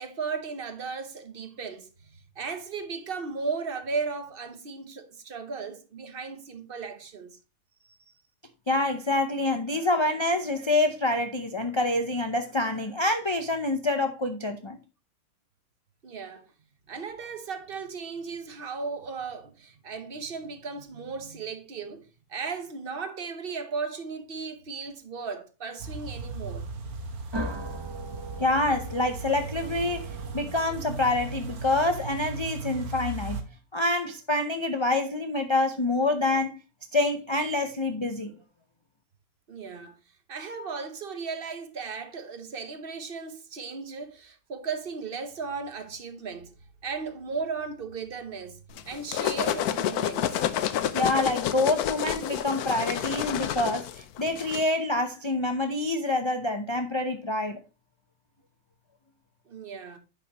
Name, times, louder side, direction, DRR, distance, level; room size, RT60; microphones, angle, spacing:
voice 1, 0.0-7.4 7.8-8.1 16.0-16.5 16.9-26.7 39.5-40.0 40.3-46.5 46.8-48.6 48.8-50.5 59.5-60.0, right 5 dB, 40° right, 1.2 m, -36 dB
voice 2, 8.7-14.8 28.4-33.4 33.7-36.6 36.9-38.3 50.9-57.6, left 2 dB, 30° left, 0.5 m, -26 dB
sound 1, 25.8-33.4, right 3 dB, 75° right, 1.6 m, -37 dB
sound 2, 27.3-32.0, right 1 dB, 20° right, 0.8 m, -39 dB
sound 3, 48.8-54.6, left 10 dB, 85° left, 1.2 m, -29 dB
9.9 x 5.8 x 3.0 m
omnidirectional pair, 1.6 m